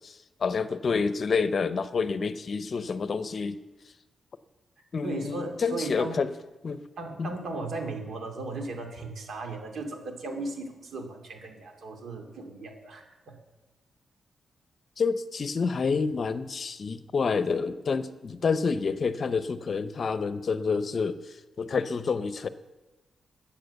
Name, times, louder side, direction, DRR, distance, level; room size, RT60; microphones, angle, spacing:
voice 1, 0.0-3.6 4.9-6.3 6.6-6.8 7.2-7.3 15.0-22.5, left 5 dB, 50° left, 13 dB, 0.7 m, -28 dB
voice 2, 5.0-6.2 7.0-13.4, right 2 dB, 70° right, 4 dB, 2.4 m, -36 dB
13.5 x 8.6 x 6.9 m, 1.1 s
cardioid pair, 115°, 0 cm